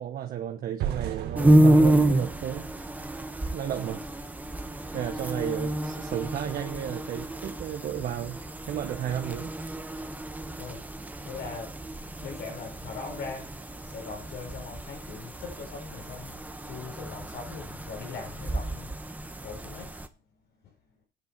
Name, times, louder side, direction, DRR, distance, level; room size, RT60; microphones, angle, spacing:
voice 1, 0.0-2.6 3.5-4.0 4.7-8.4 8.7-9.5, right 10 dB, 60° right, 1.2 m, -33 dB
sound 1, 0.8-3.8, right 10 dB, 75° right, 1.7 m, -36 dB
sound 2, 1.3-20.1, right 1 dB, 10° right, 1.1 m, -29 dB
voice 2, 10.6-10.9 11.2-11.8 12.2-18.9 19.4-19.9 20.6-20.7, left 5 dB, 75° left, 5.6 m, -41 dB
10.5 x 6.9 x 6.7 m
cardioid pair, 110°, 17 cm